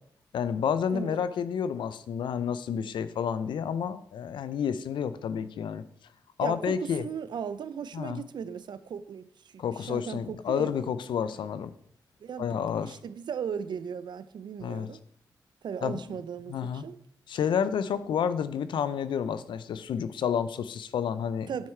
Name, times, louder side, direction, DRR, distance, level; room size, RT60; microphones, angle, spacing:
voice 1, 0.3-5.8 6.4-7.0 7.9-8.2 9.6-11.7 12.4-13.0 14.6-14.9 15.8-16.0 16.5-16.8 17.3-21.5, left 7 dB, 80° left, 0.5 m, -30 dB
voice 2, 0.9-1.2 6.4-10.8 12.2-15.0 15.6-17.0 21.5-21.7, right 7 dB, 70° right, 0.5 m, -37 dB
9.4 x 4.7 x 4.4 m
cardioid pair, 55°, 8 cm